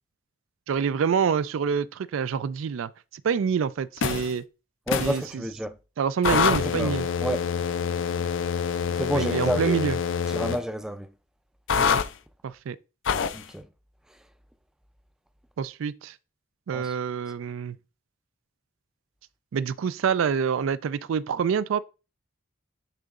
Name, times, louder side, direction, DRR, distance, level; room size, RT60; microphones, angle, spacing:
voice 1, 0.7-2.9 3.2-4.4 5.0-5.2 6.0-7.1 9.1-10.0 12.4-12.8 15.6-16.1 16.7-17.8 19.5-21.8, right 7 dB, 80° right, 0.3 m, -26 dB
sound 1, 4.0-4.3 4.9-5.2 6.2-10.6 11.7-12.1 13.1-13.4, left 6 dB, 70° left, 0.4 m, -26 dB
voice 2, 4.9-5.8 6.3-6.9 7.2-7.5 9.0-9.8 10.3-11.1 13.3-13.7 14.1-14.2 16.7-16.9, equal, 5° right, 0.4 m, -30 dB
9.9 x 3.9 x 2.4 m
head